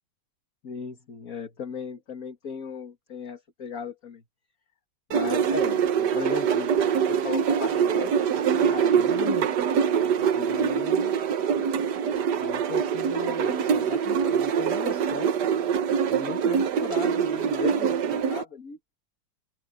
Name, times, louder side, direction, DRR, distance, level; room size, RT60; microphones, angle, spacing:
voice 1, 0.6-4.2 5.1-6.7 7.0-9.5 10.0-11.2 12.4-15.4 16.1-18.8, left 5 dB, 45° left, 2.3 m, -36 dB
sound 1, 5.1-18.4, right 7 dB, 65° right, 1.5 m, -24 dB
open air
omnidirectional pair, 2.1 m